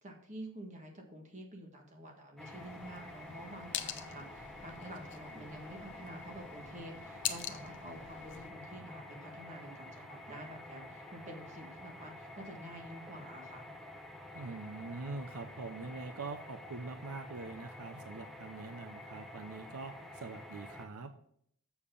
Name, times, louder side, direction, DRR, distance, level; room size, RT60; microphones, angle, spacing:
voice 1, 0.0-13.7, right 1 dB, 30° right, 2 dB, 1.6 m, -49 dB
sound 1, 2.4-20.9, left 1 dB, ahead, 0.8 m, -49 dB
sound 2, 2.5-8.5, left 10 dB, 55° left, 0.7 m, -44 dB
voice 2, 14.3-21.1, right 3 dB, 80° right, 9 dB, 0.7 m, -44 dB
7.1 x 6.9 x 5.4 m, 0.66 s
head